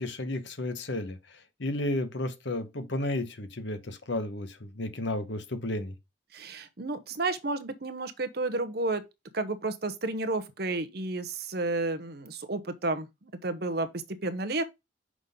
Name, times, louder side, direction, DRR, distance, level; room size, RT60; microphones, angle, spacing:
voice 1, 0.0-5.9, left 1 dB, 70° left, 1.1 m, -33 dB
voice 2, 6.3-9.0 9.3-14.6, right 2 dB, 55° right, 0.9 m, -31 dB
6.1 x 3.8 x 5.2 m
head